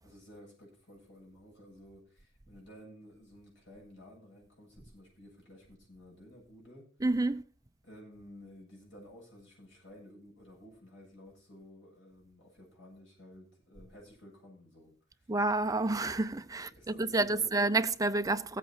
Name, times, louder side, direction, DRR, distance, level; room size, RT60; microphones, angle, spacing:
voice 1, 0.0-6.9 7.8-15.3 16.6-17.6, equal, 70° left, 7.9 m, -54 dB
voice 2, 7.0-7.4 15.3-16.7 17.0-18.6, right 2 dB, 20° right, 0.6 m, -29 dB
16.0 x 8.4 x 4.4 m
head